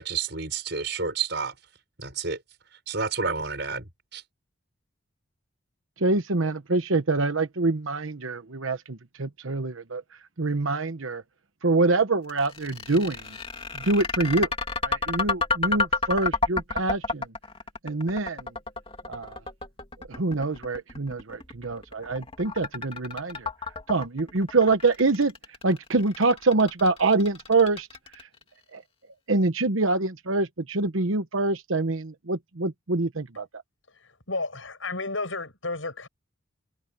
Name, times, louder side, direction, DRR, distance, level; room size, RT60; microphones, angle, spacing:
voice 1, 0.0-1.5 2.0-2.4 2.9-3.8 4.1-4.2, right 5 dB, 55° right, 6.5 m, -29 dB
voice 2, 6.0-10.0 10.4-11.2 11.6-13.2 13.7-14.5 14.8-17.3 17.8-18.5 19.1-19.4 20.1-23.5 23.9-25.3 25.6-27.9 28.7-28.8 29.3-33.5, right 3 dB, 75° right, 1.0 m, -25 dB
sound 1, 12.3-28.4, left 4 dB, 25° left, 3.3 m, -30 dB
voice 3, 34.0-36.1, left 3 dB, 70° left, 7.7 m, -32 dB
head